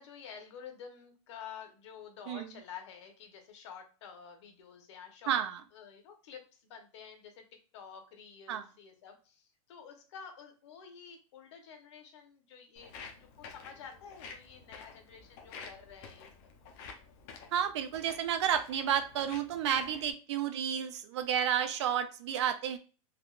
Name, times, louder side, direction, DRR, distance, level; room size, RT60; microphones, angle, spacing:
voice 1, 0.0-5.4 5.7-7.4 7.7-16.5, left 7 dB, 50° left, 4 dB, 0.9 m, -50 dB
voice 2, 5.3-5.6 8.5-8.6 17.5-22.8, right 9 dB, 50° right, 8 dB, 0.4 m, -31 dB
Walk footsteps, 12.8-20.1, left 5 dB, 30° left, 0.5 m, -50 dB
3.4 x 2.2 x 2.4 m, 0.36 s
supercardioid pair, 170°, 19 cm